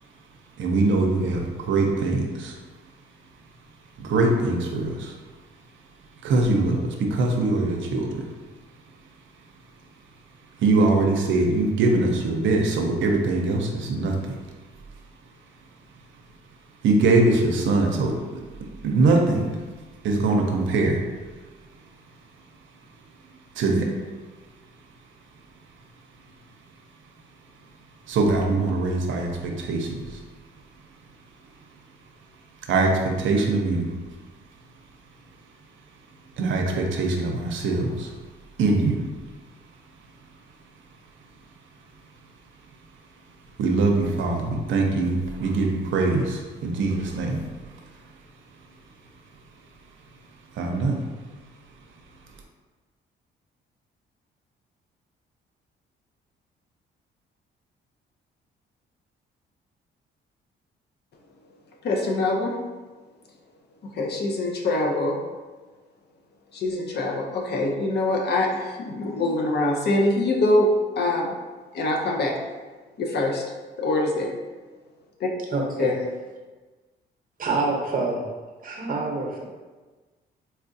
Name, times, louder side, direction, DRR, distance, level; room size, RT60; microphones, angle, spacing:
voice 1, 0.6-2.5 4.0-5.1 6.2-8.2 10.6-14.3 16.8-18.2 18.8-19.5 20.0-21.0 23.6-23.9 28.1-30.0 32.7-33.9 36.4-38.1 38.6-39.0 43.6-47.4 50.6-51.0, right 3 dB, 75° right, 1 dB, 0.6 m, -22 dB
voice 2, 61.8-62.6 63.9-65.2 66.5-70.7 71.0-71.3 71.7-72.3 73.0-73.4 73.8-74.3 75.2-75.3 75.8-76.0, left 2 dB, 55° left, 0 dB, 0.6 m, -24 dB
voice 3, 75.5-75.9 77.4-78.2 78.6-79.4, right 3 dB, 45° right, 0 dB, 0.8 m, -26 dB
4.2 x 2.4 x 2.6 m, 1.3 s
cardioid pair, 90°, 20 cm